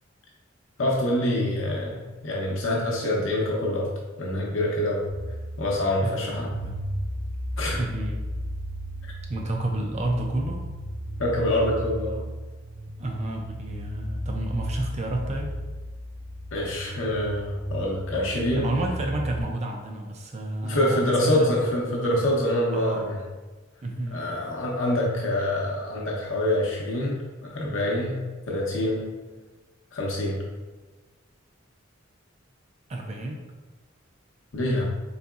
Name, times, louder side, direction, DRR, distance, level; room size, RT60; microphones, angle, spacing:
voice 1, 0.8-3.9 4.2-5.1 5.6-6.5 7.6-7.8 11.2-12.2 16.5-18.6 20.6-23.2 24.1-28.2 28.5-29.0 29.9-30.4 34.5-34.9, left 1 dB, 85° left, -3 dB, 0.7 m, -25 dB
sound 1, 5.1-19.4, equal, 75° right, 1.0 m, -35 dB
voice 2, 6.0-6.8 7.8-8.2 9.3-10.6 13.0-15.5 18.5-21.6 22.7-23.2 23.8-24.3 32.9-33.4, right 1 dB, 35° right, 1 dB, 0.4 m, -30 dB
4.0 x 3.6 x 2.4 m, 1.3 s
head